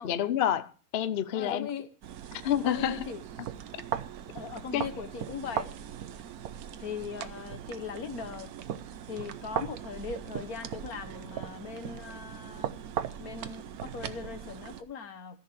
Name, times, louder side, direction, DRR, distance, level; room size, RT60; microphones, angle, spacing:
voice 1, 0.0-1.7 2.4-3.0 4.7-4.8, left 10 dB, 55° left, 0.8 m, -28 dB
voice 2, 1.3-1.9 2.6-3.2 4.3-5.7 6.8-8.5 9.1-12.7 13.2-15.4, left 6 dB, 75° left, 1.6 m, -40 dB
sound 1, 2.0-14.8, right 9 dB, 80° right, 1.2 m, -39 dB
14.0 x 6.4 x 6.7 m
omnidirectional pair, 1.6 m